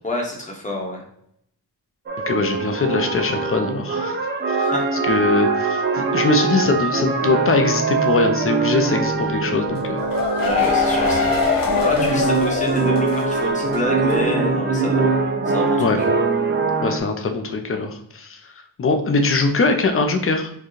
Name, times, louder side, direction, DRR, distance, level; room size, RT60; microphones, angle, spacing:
voice 1, 0.0-1.0 4.6-4.8 10.4-15.1 15.5-16.1, left 1 dB, 20° left, -1 dB, 1.0 m, -28 dB
sound 1, 2.1-17.0, right 4 dB, 30° right, 0.4 m, -22 dB
voice 2, 2.3-4.2 4.6-4.7 5.1-10.0 15.8-16.0 16.8-18.4 18.8-20.5, left 3 dB, 35° left, 6 dB, 0.5 m, -21 dB
sound 2, 9.7-13.4 13.7-13.8 14.1-14.2, left 5 dB, 55° left, 0.9 m, -22 dB
4.5 x 2.3 x 3.1 m, 0.72 s
wide cardioid pair, 125°, 41 cm